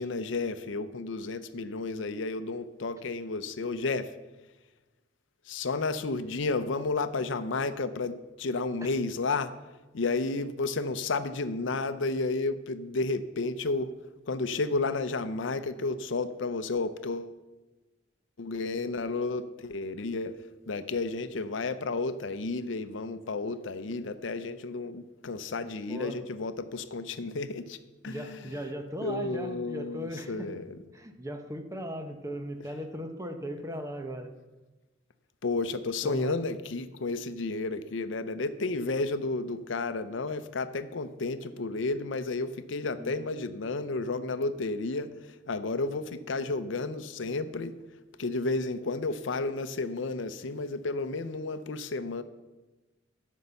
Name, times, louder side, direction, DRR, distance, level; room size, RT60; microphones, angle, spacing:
voice 1, 0.0-4.1 5.5-9.5 9.9-13.9 14.3-17.3 18.4-20.4 20.7-27.8 28.0-28.5 29.0-30.8 35.4-47.8 48.2-52.2, left 3 dB, 70° left, 12 dB, 0.6 m, -32 dB
voice 2, 25.9-26.2 28.0-30.5 30.9-34.3 36.0-36.4 43.0-43.2, equal, 15° right, 6 dB, 0.9 m, -38 dB
13.5 x 5.4 x 6.9 m, 1.1 s
head